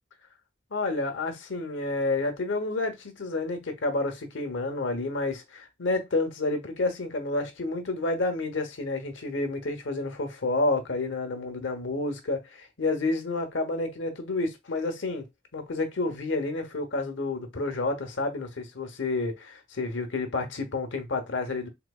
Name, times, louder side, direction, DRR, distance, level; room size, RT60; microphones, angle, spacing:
voice 1, 0.7-15.3 15.5-21.7, left 2 dB, 85° left, 0.9 m, -30 dB
3.9 x 2.8 x 2.3 m
head